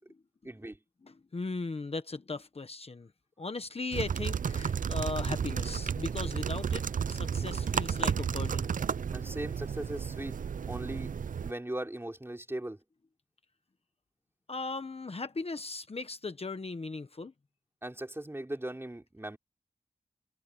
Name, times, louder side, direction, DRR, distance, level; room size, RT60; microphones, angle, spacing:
voice 1, 0.4-0.8 9.1-10.4 10.7-11.1 11.4-12.8 17.8-19.4, right 1 dB, 15° right, 3.4 m, -38 dB
voice 2, 1.0-3.1 3.4-8.7 14.5-17.3, left 3 dB, 45° left, 1.2 m, -38 dB
sound 1, 3.9-11.5, right 7 dB, 65° right, 0.5 m, -32 dB
wide cardioid pair, 100°, 15 cm